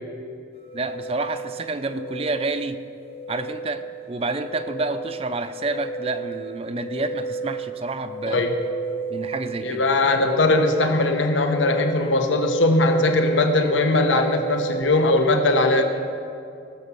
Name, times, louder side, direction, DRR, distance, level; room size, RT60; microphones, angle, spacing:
sound 1, 0.6-14.8, right 3 dB, 30° left, 0.5 m, -32 dB
voice 1, 0.7-2.8 3.3-8.5 9.1-9.9, right 3 dB, 30° right, 10 dB, 0.5 m, -29 dB
voice 2, 9.6-15.8, left 2 dB, 90° left, 5 dB, 1.1 m, -20 dB
18.5 x 7.1 x 5.6 m, 2.5 s
head